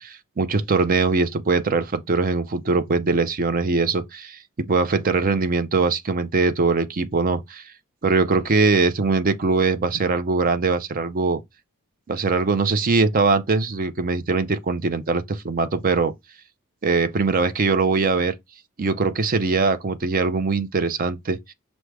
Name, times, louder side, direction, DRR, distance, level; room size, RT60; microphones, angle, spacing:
voice 1, 0.0-7.6 8.0-11.4 12.1-16.1 16.8-18.3 18.8-21.5, right 4 dB, 40° right, 0.5 m, -22 dB
5.9 x 2.1 x 3.3 m
head